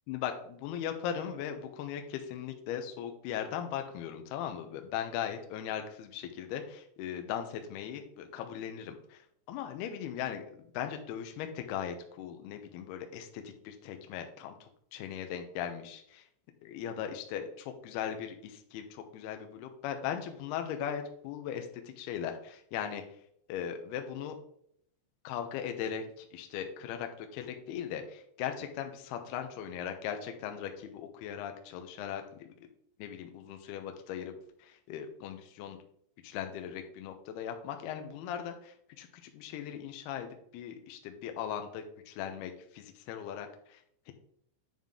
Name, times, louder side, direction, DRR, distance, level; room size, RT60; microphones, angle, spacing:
voice 1, 0.1-16.3 16.6-23.0 23.5-24.4 25.2-32.2 32.6-32.7 33.0-34.3 34.6-35.8 36.2-44.1, left 9 dB, 90° left, 5 dB, 2.3 m, -39 dB
9.0 x 5.7 x 3.7 m, 0.67 s
omnidirectional pair, 5.7 m